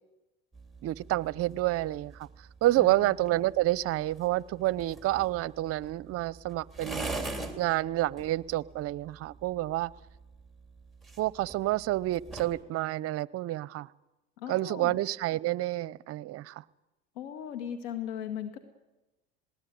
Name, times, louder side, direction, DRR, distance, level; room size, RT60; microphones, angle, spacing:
sound 1, 0.5-12.6, right 2 dB, ahead, 3.1 m, -44 dB
voice 1, 0.8-2.3 2.6-7.1 7.6-9.9 11.2-13.9 14.5-16.6, right 16 dB, 50° right, 0.7 m, -29 dB
voice 2, 2.8-3.1 14.4-15.0 17.2-18.6, left 9 dB, 80° left, 1.9 m, -38 dB
19.5 x 18.5 x 9.3 m
supercardioid pair, 90°, 30 cm